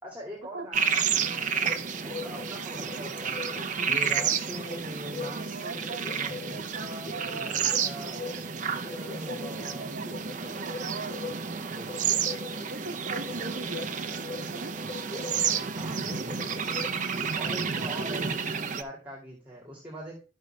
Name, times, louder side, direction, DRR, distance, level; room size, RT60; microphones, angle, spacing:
voice 1, 0.0-3.6 3.9-10.0 11.7-11.9 15.8-16.9 17.4-20.1, equal, 10° right, 2.1 m, -43 dB
sound 1, 0.7-18.8, right 7 dB, 40° right, 0.6 m, -31 dB
sound 2, 1.6-17.0, left 3 dB, 30° left, 1.2 m, -42 dB
voice 2, 3.6-4.0 5.3-8.4 9.3-10.1 10.6-11.6 12.6-14.8 17.0-17.2, right 3 dB, 65° right, 1.0 m, -41 dB
12.0 x 5.4 x 3.2 m
head